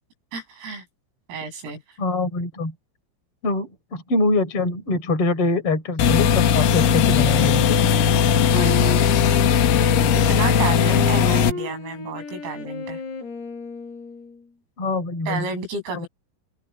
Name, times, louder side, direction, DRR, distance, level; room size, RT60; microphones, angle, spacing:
voice 1, 0.3-0.8 1.3-1.8 8.5-9.1 10.1-13.0 15.3-16.1, right 4 dB, 90° right, 11.0 m, -31 dB
voice 2, 2.0-2.7 3.4-7.8 14.8-15.5, left 2 dB, 30° left, 5.0 m, -24 dB
sound 1, 6.0-11.5, left 7 dB, 70° left, 4.1 m, -18 dB
Wind instrument woodwind instrument, 6.7-14.5, left 4 dB, 85° left, 10.0 m, -34 dB
open air
omnidirectional pair, 6.0 m